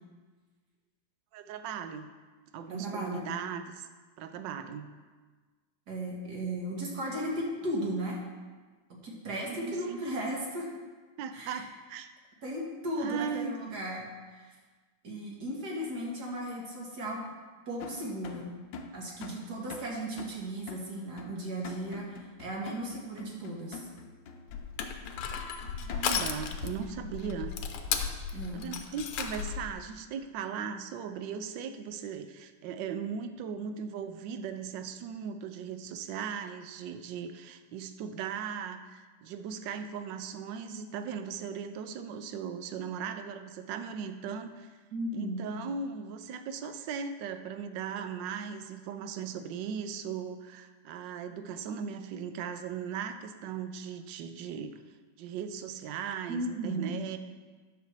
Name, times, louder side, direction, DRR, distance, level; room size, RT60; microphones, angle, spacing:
voice 1, 1.3-2.2 2.5-3.9 4.2-4.9 9.5-10.0 11.2-12.1 13.0-13.6 25.8-27.6 28.5-44.7 45.1-54.7 55.2-57.2, right 7 dB, 70° right, 8 dB, 1.2 m, -38 dB
voice 2, 2.7-3.3 5.9-8.2 8.9-10.7 11.3-11.6 12.4-14.5 15.0-17.2 17.7-18.5 18.9-23.8 28.3-28.7 44.9-45.4 56.3-56.9, right 1 dB, 50° right, -2 dB, 2.2 m, -36 dB
sound 1, 17.8-26.4, left 4 dB, 70° left, 1.3 m, -46 dB
Crushing, 24.5-29.7, left 7 dB, 85° left, 1.6 m, -35 dB
10.0 x 4.9 x 6.7 m, 1.4 s
omnidirectional pair, 2.4 m